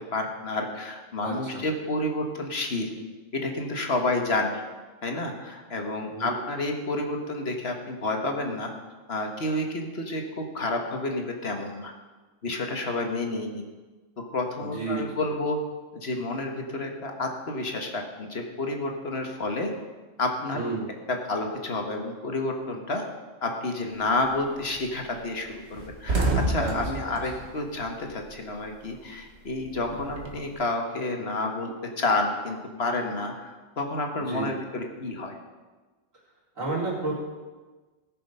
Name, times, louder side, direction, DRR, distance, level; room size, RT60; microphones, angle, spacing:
voice 1, 0.0-2.9 3.3-4.6 5.0-8.7 9.1-11.9 12.4-13.6 14.2-15.6 15.9-19.7 20.2-20.6 21.1-23.0 23.4-35.4, left 2 dB, 50° left, 3 dB, 1.6 m, -30 dB
voice 2, 1.2-1.6 6.1-6.4 14.6-15.0 20.5-20.9 26.6-26.8 27.0-27.2 34.2-34.5 36.5-37.1, right 3 dB, 80° right, -6 dB, 4.1 m, -31 dB
sound 1, 24.0-24.3 24.7-24.8 25.1-25.2 25.6-28.6 28.8-30.5, right 2 dB, 55° right, 1.7 m, -29 dB
17.0 x 6.7 x 5.4 m, 1.3 s
omnidirectional pair, 1.4 m